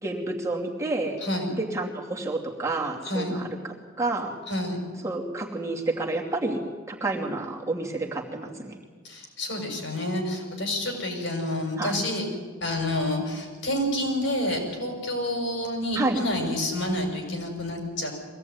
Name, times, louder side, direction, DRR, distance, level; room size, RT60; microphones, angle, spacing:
voice 1, 0.0-1.2 1.6-3.5 4.0-4.4 5.0-6.6 6.9-8.8 11.8-12.0 16.0-16.2, right 2 dB, 15° right, -1 dB, 2.6 m, -29 dB
voice 2, 4.5-4.8 9.0-12.3 12.6-18.1, left 1 dB, 70° left, 3 dB, 6.4 m, -28 dB
23.0 x 17.5 x 9.6 m, 1.5 s
head